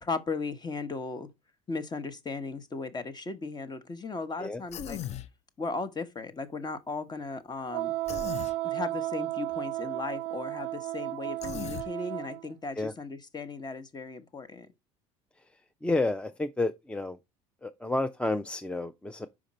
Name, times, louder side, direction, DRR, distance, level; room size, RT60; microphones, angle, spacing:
voice 1, 0.0-1.3 1.7-5.0 5.6-7.9 8.6-14.7, left 3 dB, 30° left, 1.1 m, -36 dB
Human voice, 4.7-5.3 8.1-8.5 11.4-11.9, left 10 dB, 50° left, 0.6 m, -37 dB
Wind instrument woodwind instrument, 7.7-12.4, right 17 dB, 70° right, 0.4 m, -34 dB
voice 2, 15.8-17.2 17.6-19.3, left 2 dB, 10° left, 0.5 m, -30 dB
5.0 x 5.0 x 4.2 m
hypercardioid pair, 75°, 15 cm